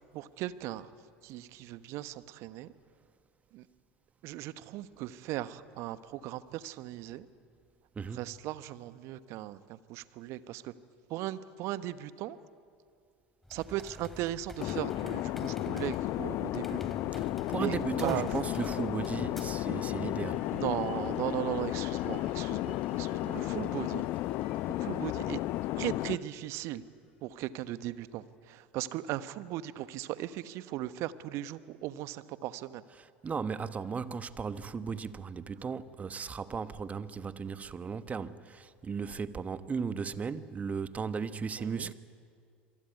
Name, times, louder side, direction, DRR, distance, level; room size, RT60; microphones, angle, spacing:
voice 1, 0.1-0.9 1.2-2.7 3.5-3.6 4.2-7.3 8.1-10.7 11.1-12.4 13.5-16.8 17.6-18.3 20.5-24.1 24.8-25.4 25.7-26.8 27.2-32.8 41.6-41.9, right 14 dB, 55° right, 1.1 m, -37 dB
voice 2, 7.9-8.3 17.2-20.5 33.0-41.9, right 5 dB, 25° right, 1.2 m, -36 dB
sound 1, 13.4-19.8, equal, 5° left, 2.8 m, -47 dB
sound 2, 14.6-26.2, left 16 dB, 50° left, 0.7 m, -33 dB
sound 3, 19.2-27.2, left 4 dB, 75° left, 4.0 m, -54 dB
26.0 x 23.5 x 9.6 m
figure-of-eight pair, 75°, 6 cm